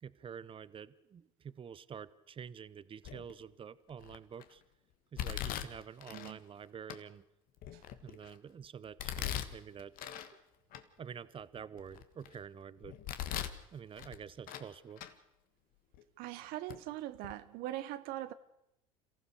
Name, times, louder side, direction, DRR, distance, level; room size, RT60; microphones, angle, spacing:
voice 1, 0.0-4.6 5.1-7.2 8.0-9.9 11.0-13.0 13.7-15.0, right 7 dB, 30° right, 1.0 m, -48 dB
Domestic sounds home sounds, 3.0-3.4 4.0-4.4 5.2-6.3 6.9-7.0 7.6-8.3 9.0-10.3 10.7-10.8 11.4-12.3 12.8-13.6 14.0-14.7 15.0-15.1 15.9-16.0 16.7-16.8 17.1-17.3, left 11 dB, 55° left, 1.6 m, -40 dB
voice 2, 16.2-18.3, right 14 dB, 60° right, 0.8 m, -41 dB
27.5 x 15.0 x 6.6 m
hypercardioid pair, 75°, 17 cm